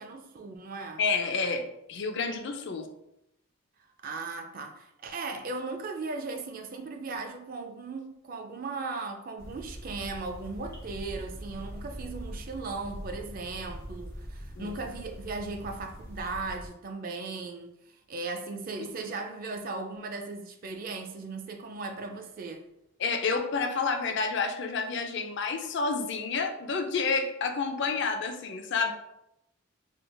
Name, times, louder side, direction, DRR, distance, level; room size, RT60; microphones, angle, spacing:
voice 1, 0.0-1.0 4.0-22.6, right 3 dB, 40° right, 0.4 m, -37 dB
voice 2, 1.0-1.6 1.9-2.9 14.6-14.8 18.8-18.9 23.0-28.9, left 4 dB, 55° left, 0.4 m, -29 dB
sound 1, 9.4-16.7, equal, 15° left, 0.9 m, -42 dB
3.4 x 3.1 x 2.2 m
head